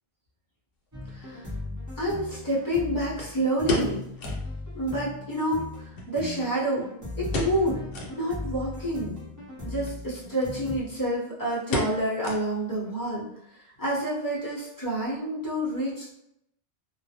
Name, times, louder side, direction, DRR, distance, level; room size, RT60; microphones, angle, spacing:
sound 1, 0.9-10.8, left 2 dB, 20° right, 0.6 m, -38 dB
sound 2, 1.1-1.2 3.2-4.5 4.8-4.9 5.2-5.3 6.0-6.8 7.3-7.7 7.9-8.2 8.7-8.8 9.7-10.0 10.4-10.5 10.8-11.2 11.7-12.8 13.1-13.2 13.8-14.1 14.4-14.5, left 2 dB, 65° left, 0.8 m, -33 dB
voice 1, 1.1-1.5 2.0-4.0 4.7-6.9 7.2-7.8 8.1-9.2 9.6-13.3 13.8-16.1, equal, 25° left, -7 dB, 0.5 m, -28 dB
2.2 x 2.0 x 2.7 m, 0.81 s
omnidirectional pair, 1.1 m